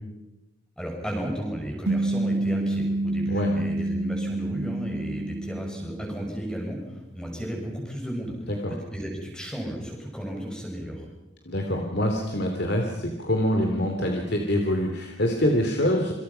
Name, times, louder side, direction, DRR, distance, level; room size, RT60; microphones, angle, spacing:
voice 1, 0.8-8.3 8.7-11.0, equal, 5° left, 0 dB, 6.7 m, -34 dB
sound 1, 1.9-6.5, right 2 dB, 85° right, 1.3 m, -28 dB
voice 2, 11.5-16.1, left 1 dB, 50° left, 3 dB, 2.9 m, -25 dB
27.5 x 26.5 x 5.7 m, 1.0 s
head